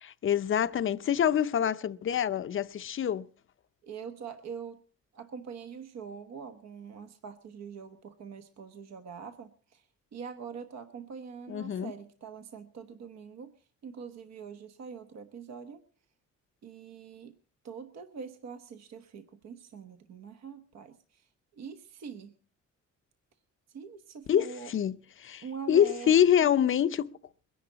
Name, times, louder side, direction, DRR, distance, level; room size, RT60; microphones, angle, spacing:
voice 1, 0.0-3.3 11.5-11.9 24.3-27.1, left 9 dB, 45° left, 0.6 m, -26 dB
voice 2, 3.8-4.8 5.1-9.8 10.1-13.5 13.8-15.8 16.6-17.3 17.6-21.3 21.5-22.3 23.7-24.7 25.4-26.1 26.4-26.5, right 6 dB, 65° right, 1.1 m, -44 dB
22.0 x 11.0 x 3.9 m
cardioid pair, 140°, 29 cm